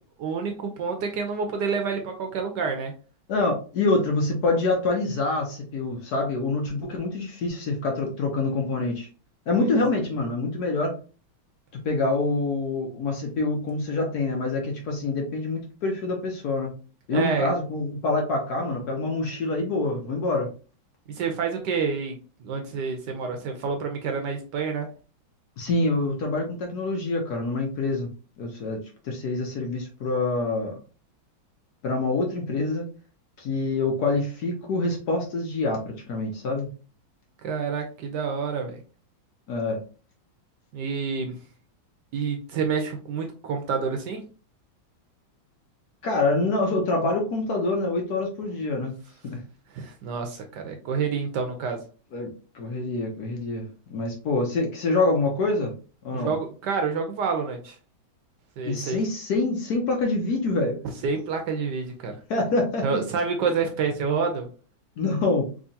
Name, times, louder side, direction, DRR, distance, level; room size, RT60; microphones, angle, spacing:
voice 1, 0.2-2.9 9.6-9.8 17.1-17.5 21.1-24.9 37.4-38.8 40.7-41.4 42.1-44.2 49.7-51.8 56.1-57.8 58.6-59.0 61.0-62.2 62.8-64.5, right 5 dB, 70° right, 4 dB, 1.1 m, -28 dB
voice 2, 3.3-9.1 9.5-11.0 11.7-16.7 17.1-20.5 25.6-28.1 28.4-30.7 31.8-32.8 33.4-36.7 39.5-39.8 46.0-49.0 49.2-49.4 52.1-55.7 56.0-56.3 58.6-60.8 62.3-63.0 65.0-65.5, left 3 dB, 60° left, 1 dB, 1.1 m, -26 dB
3.6 x 3.1 x 2.6 m, 0.35 s
omnidirectional pair, 2.2 m